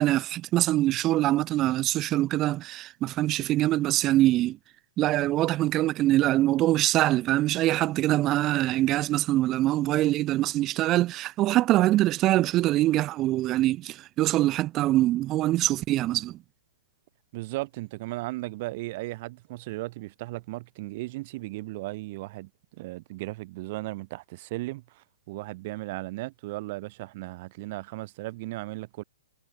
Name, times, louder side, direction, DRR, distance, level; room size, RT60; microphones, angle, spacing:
voice 1, 0.0-4.6 5.0-16.4, right 15 dB, 25° right, 3.2 m, -24 dB
voice 2, 17.3-22.5 22.8-29.0, right 20 dB, 40° right, 6.8 m, -36 dB
hypercardioid pair, 145°, 0 cm